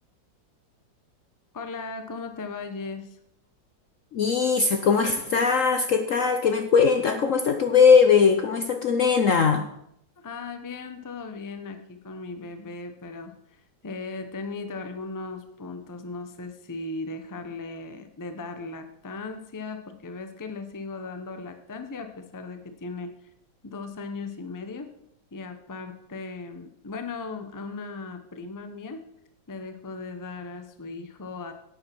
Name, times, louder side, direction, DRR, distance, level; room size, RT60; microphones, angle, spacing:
voice 1, 1.5-3.2 10.2-23.1 23.6-24.9 25.3-29.0 29.5-31.5, left 3 dB, 20° left, 7 dB, 0.6 m, -37 dB
sound 1, 2.9-3.1 3.4-3.5 4.6-5.5 6.3-6.4 7.9-8.0, left 2 dB, 40° left, 4.2 m, -48 dB
voice 2, 4.1-9.7, left 5 dB, 60° left, 7 dB, 0.9 m, -20 dB
10.0 x 8.7 x 6.0 m, 0.76 s
omnidirectional pair, 2.0 m